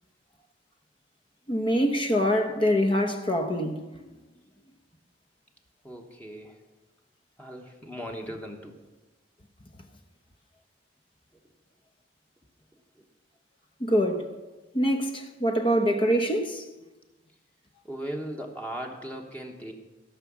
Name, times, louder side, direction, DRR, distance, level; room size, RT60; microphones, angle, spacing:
voice 1, 1.5-3.9 13.8-14.3 14.7-16.6, equal, 30° left, 0.9 m, -24 dB
voice 2, 5.8-6.6 7.4-8.8 13.0-13.1 17.8-19.7, equal, 10° left, 1.2 m, -38 dB
16.5 x 5.9 x 7.3 m
head